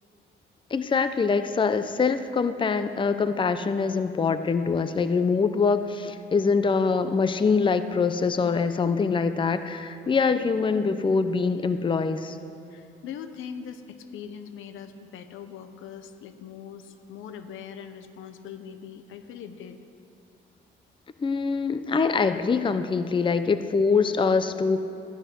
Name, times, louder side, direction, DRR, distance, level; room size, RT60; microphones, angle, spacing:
voice 1, 0.7-12.4 21.2-24.8, left 5 dB, 25° left, 11 dB, 0.6 m, -24 dB
voice 2, 12.7-19.8, left 7 dB, 85° left, 9 dB, 0.9 m, -41 dB
14.5 x 11.0 x 6.2 m, 2.6 s
cardioid pair, 90°, 20 cm